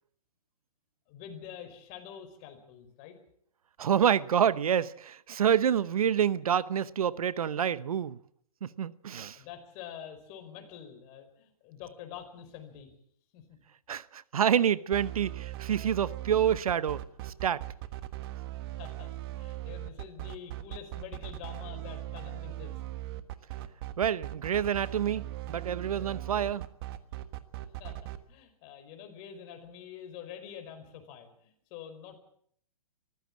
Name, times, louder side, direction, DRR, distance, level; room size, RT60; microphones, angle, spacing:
voice 1, 1.1-3.2 9.3-12.9 13.3-13.6 18.6-19.1 19.4-22.8 27.8-28.0 28.3-32.2, left 9 dB, 35° left, 5.0 m, -46 dB
voice 2, 3.8-8.2 8.6-9.4 13.9-17.6 24.0-26.6, right 9 dB, 75° right, 0.9 m, -28 dB
sound 1, 14.9-28.2, right 15 dB, 40° right, 1.5 m, -39 dB
24.0 x 15.0 x 7.5 m
hypercardioid pair, 135°, 19 cm